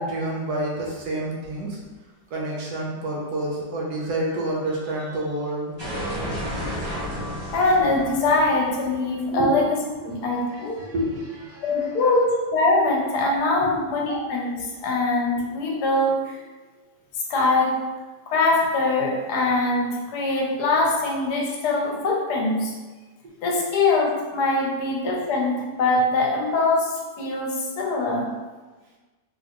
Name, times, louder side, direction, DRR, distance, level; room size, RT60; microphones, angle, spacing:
voice 1, 0.0-1.8 2.3-5.7 9.3-9.5 10.5-12.0 13.6-13.8, right 1 dB, 70° right, -3 dB, 1.4 m, -29 dB
sound 1, 5.8-10.5, equal, 20° right, 1.0 m, -33 dB
voice 2, 7.5-9.8 10.0-10.8 11.6-12.3 12.5-16.4 17.3-17.8 18.3-22.7 23.4-28.3, left 2 dB, 70° left, -1 dB, 1.3 m, -23 dB
3.9 x 3.8 x 2.9 m, 1.3 s
omnidirectional pair, 1.8 m